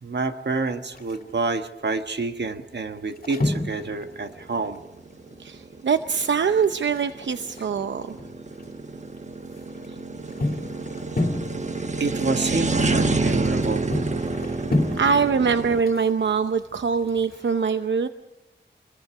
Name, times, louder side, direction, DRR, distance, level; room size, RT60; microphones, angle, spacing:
voice 1, 0.0-4.8 12.0-13.9, right 3 dB, 70° right, 7 dB, 1.5 m, -28 dB
sound 1, 0.9-1.5 2.2-2.4 2.7-5.4 5.7-5.8 6.1-6.2 6.6-8.7 9.2-17.5, left 2 dB, 55° left, 2.5 m, -31 dB
sound 2, 3.4-15.8, right 3 dB, 40° right, 1.2 m, -28 dB
voice 2, 5.4-8.2 15.0-18.1, right 6 dB, 90° right, 9 dB, 0.7 m, -23 dB
28.0 x 21.5 x 4.9 m, 0.98 s
wide cardioid pair, 100°, 18 cm